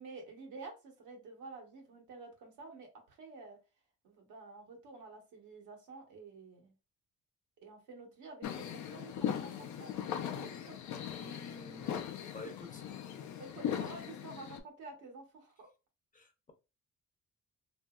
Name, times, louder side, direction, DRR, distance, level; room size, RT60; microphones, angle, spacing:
voice 1, 0.0-3.6 4.0-6.7 7.6-10.7 13.4-15.7, right 3 dB, 80° right, 1.0 m, -50 dB
sound 1, 8.4-14.6, left 9 dB, 70° left, 0.5 m, -39 dB
voice 2, 11.2-12.0 12.3-12.8 16.1-16.5, left 3 dB, 25° left, 0.7 m, -49 dB
2.7 x 2.6 x 2.3 m
cardioid pair, 90°, 30 cm